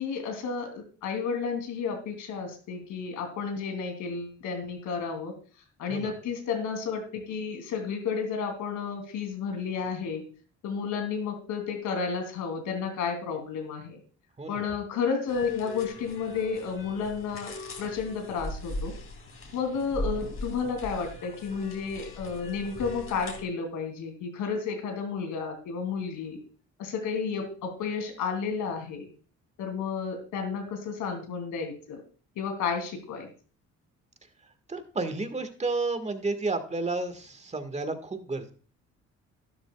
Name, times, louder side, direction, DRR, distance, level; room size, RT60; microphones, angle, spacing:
voice 1, 0.0-5.3 5.8-10.2 10.6-14.0 14.5-17.5 17.8-18.9 19.5-26.4 26.8-29.1 29.6-32.0 32.4-33.3, left 5 dB, 90° left, 5 dB, 3.0 m, -32 dB
sound 1, 15.3-23.4, left 1 dB, 45° left, 3.0 m, -39 dB
voice 2, 34.7-38.5, right 3 dB, 20° right, 9 dB, 1.7 m, -31 dB
12.5 x 12.0 x 2.3 m, 0.40 s
cardioid pair, 90°, 30 cm